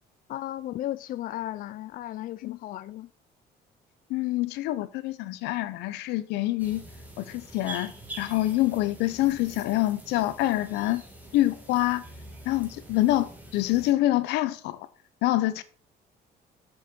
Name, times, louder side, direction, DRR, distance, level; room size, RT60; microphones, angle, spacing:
voice 1, 0.3-3.1 4.2-4.3, left 13 dB, 55° left, 0.4 m, -35 dB
voice 2, 4.1-6.8 7.2-11.0 11.3-12.0 12.5-14.8 15.2-15.6, left 16 dB, 90° left, 0.7 m, -26 dB
sound 1, 6.6-13.9, right 2 dB, 10° right, 2.3 m, -45 dB
6.4 x 6.3 x 5.2 m
cardioid pair, 110°, 17 cm